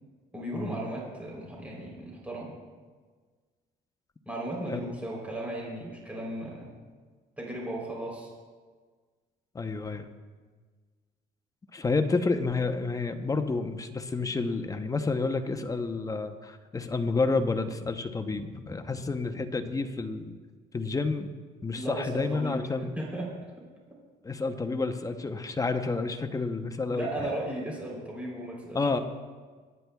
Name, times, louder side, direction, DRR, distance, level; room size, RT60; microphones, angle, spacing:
voice 1, 0.3-2.6 4.3-6.7 7.4-8.3 21.8-23.3 26.9-29.0, right 1 dB, 10° right, -3 dB, 3.4 m, -36 dB
voice 2, 9.5-10.1 11.7-20.4 20.7-21.3 21.6-22.9 24.2-27.1 28.7-29.0, left 3 dB, 20° left, 8 dB, 0.8 m, -30 dB
23.0 x 9.5 x 2.3 m, 1.5 s
cardioid pair, 110°, 17 cm